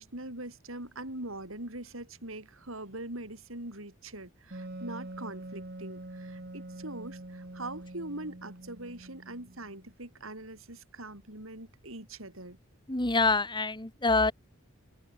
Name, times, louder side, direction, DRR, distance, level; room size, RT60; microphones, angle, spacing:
voice 1, 0.0-12.6, right 2 dB, 75° right, 7.4 m, -42 dB
Wind instrument woodwind instrument, 4.5-9.9, right 1 dB, 50° right, 2.5 m, -44 dB
voice 2, 12.9-14.3, left 3 dB, 20° left, 2.1 m, -26 dB
open air
head